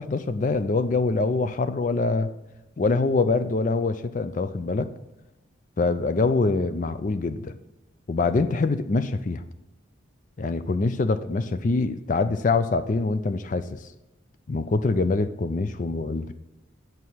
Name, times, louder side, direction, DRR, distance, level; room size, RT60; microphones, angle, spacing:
voice 1, 0.0-2.3 2.8-4.9 5.8-7.6 8.1-9.4 10.4-13.8 14.5-16.3, left 3 dB, 40° left, 12 dB, 0.4 m, -24 dB
8.0 x 4.8 x 5.6 m, 0.97 s
head